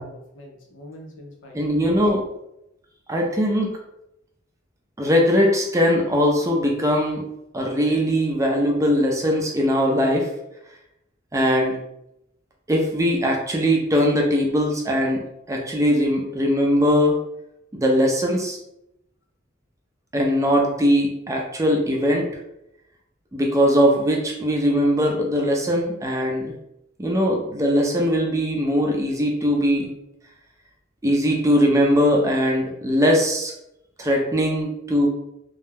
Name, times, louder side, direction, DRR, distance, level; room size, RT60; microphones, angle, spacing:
voice 1, 0.0-2.0, left 1 dB, 70° left, 1 dB, 0.6 m, -44 dB
voice 2, 1.5-2.3 3.1-3.7 5.0-7.2 7.5-10.3 11.3-11.8 12.7-17.2 17.7-18.6 20.1-22.3 23.3-26.5 27.0-29.9 31.0-33.5 34.0-35.1, equal, 15° right, 0 dB, 0.5 m, -20 dB
2.3 x 2.1 x 3.2 m, 0.83 s
head